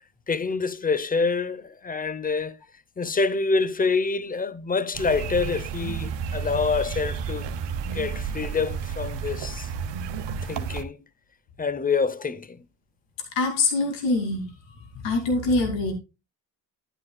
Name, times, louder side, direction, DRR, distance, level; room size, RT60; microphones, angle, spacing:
voice 1, 0.3-2.6 3.0-7.6 7.9-9.7 10.4-11.0 11.6-12.6, left 4 dB, 20° left, 0.7 m, -26 dB
sound 1, 4.9-10.8, right 6 dB, 75° right, 1.1 m, -31 dB
voice 2, 13.3-14.5 14.9-15.9, left 3 dB, 85° left, 2.5 m, -24 dB
11.0 x 9.6 x 2.3 m
supercardioid pair, 70°, 43 cm